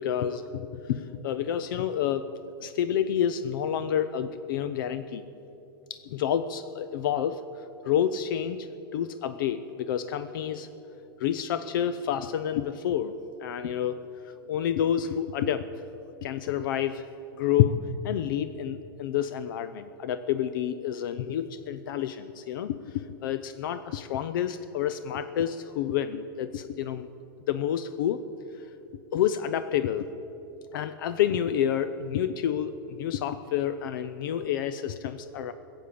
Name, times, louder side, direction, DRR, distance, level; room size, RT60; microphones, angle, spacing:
voice 1, 0.0-2.3 2.6-5.2 5.9-7.4 7.8-8.7 8.9-10.7 11.2-13.1 13.4-14.0 14.5-15.7 16.2-17.0 17.4-17.8 18.0-27.1 27.5-28.2 29.1-30.1 30.7-35.5, left 9 dB, 60° left, 12 dB, 0.6 m, -29 dB
16.0 x 7.9 x 8.6 m, 2.9 s
supercardioid pair, 150°, 12 cm